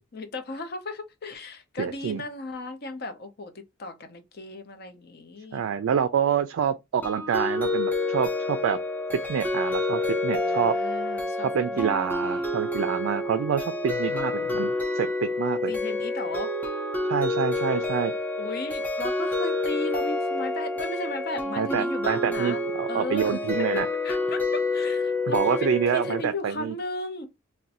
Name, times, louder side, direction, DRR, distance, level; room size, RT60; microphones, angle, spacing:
voice 1, 0.1-5.7 10.4-12.5 15.7-16.5 18.4-23.4 24.0-27.3, left 2 dB, 50° left, 0.6 m, -36 dB
voice 2, 1.8-2.2 5.5-8.8 9.3-10.8 11.4-15.7 17.1-18.1 21.6-23.9 25.3-26.7, right 7 dB, 70° right, 0.3 m, -27 dB
Felt Bells Melody, 7.0-26.2, left 2 dB, 10° left, 0.5 m, -28 dB
2.5 x 2.2 x 4.0 m
head